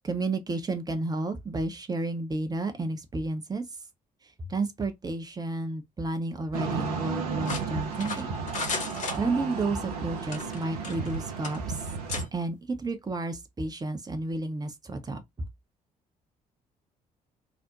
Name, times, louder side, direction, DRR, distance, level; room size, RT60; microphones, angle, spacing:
voice 1, 0.0-3.6 4.5-8.3 9.2-11.8 12.3-15.5, right 2 dB, 20° right, 0.6 m, -31 dB
sound 1, 6.5-12.3, right 5 dB, 80° right, 0.6 m, -34 dB
sound 2, 7.4-9.7 10.2-11.2 11.4-11.6 12.1-12.3, left 3 dB, 40° left, 0.9 m, -35 dB
2.5 x 2.0 x 2.7 m
figure-of-eight pair, 45°, 19 cm